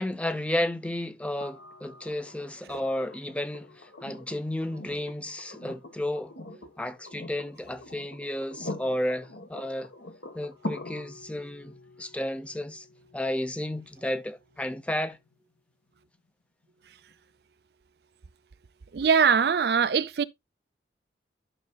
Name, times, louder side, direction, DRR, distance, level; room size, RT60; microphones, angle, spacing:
voice 1, 0.0-6.3 6.8-9.9 10.3-12.9 13.1-15.2, left 1 dB, 5° left, 0.5 m, -32 dB
sound 1, 1.4-15.3 17.1-17.2, left 2 dB, 70° left, 1.4 m, -44 dB
voice 2, 18.9-20.2, right 6 dB, 60° right, 0.4 m, -22 dB
12.0 x 5.9 x 2.3 m
head